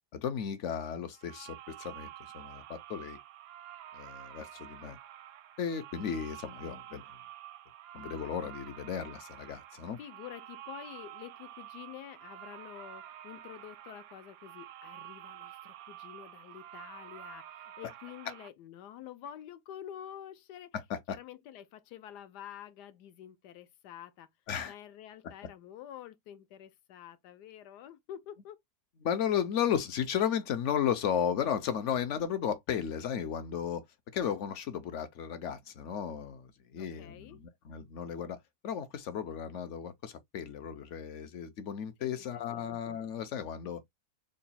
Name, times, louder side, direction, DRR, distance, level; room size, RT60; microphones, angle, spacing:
voice 1, 0.1-2.1 2.3-3.2 3.9-5.0 5.6-7.0 7.9-10.0 20.7-21.2 24.5-24.7 29.0-33.8 34.1-38.4 38.6-43.8, left 8 dB, 65° left, 0.7 m, -34 dB
sound 1, 1.1-18.5, right 12 dB, 85° right, 1.2 m, -49 dB
voice 2, 10.0-20.7 21.1-24.3 24.6-28.6 36.8-37.4 42.0-42.1 42.5-42.7, left 10 dB, 85° left, 1.3 m, -48 dB
3.8 x 2.2 x 4.0 m
omnidirectional pair, 1.7 m